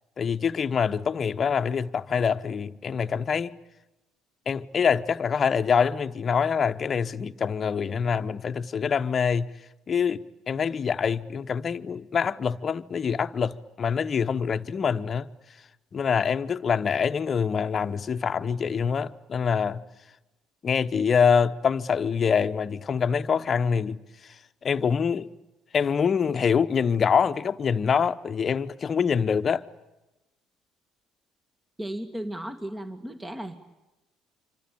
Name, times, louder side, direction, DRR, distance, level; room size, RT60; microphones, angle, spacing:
voice 1, 0.2-3.5 4.5-9.5 9.9-15.3 15.9-19.8 20.6-24.0 24.6-25.3 25.7-29.6, left 6 dB, 40° left, 1.1 m, -25 dB
voice 2, 31.8-33.6, right 1 dB, 15° right, 2.2 m, -35 dB
27.0 x 25.5 x 8.7 m
hypercardioid pair, 55°, 0 cm